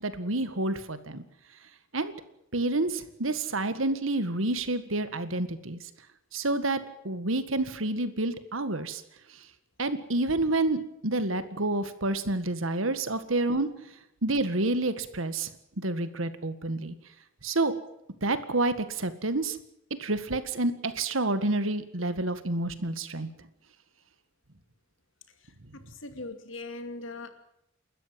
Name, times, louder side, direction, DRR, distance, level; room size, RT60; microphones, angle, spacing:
voice 1, 0.0-1.2 1.9-2.1 2.5-5.8 6.3-9.0 9.8-13.7 14.2-15.5 15.8-16.9 17.4-17.7 18.2-19.6 20.0-23.3, right 2 dB, 85° right, 12 dB, 1.8 m, -29 dB
voice 2, 25.4-27.3, left 2 dB, 70° left, 8 dB, 2.6 m, -41 dB
29.5 x 13.0 x 7.7 m, 0.80 s
head